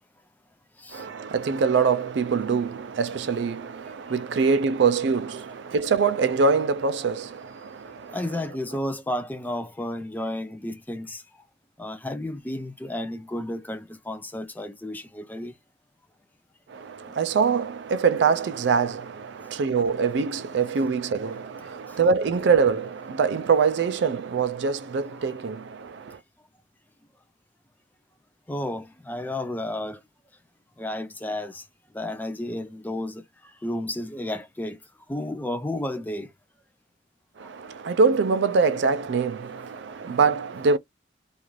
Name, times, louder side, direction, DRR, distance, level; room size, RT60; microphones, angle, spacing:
voice 1, 0.9-8.2 16.7-26.2 37.4-40.8, right 5 dB, 65° right, 0.4 m, -24 dB
voice 2, 8.1-11.2 11.8-15.5 21.9-22.0 28.5-30.0 30.8-31.6 31.9-33.2 33.6-34.8 35.1-36.3, left 1 dB, 10° left, 0.3 m, -32 dB
2.5 x 2.4 x 3.0 m
head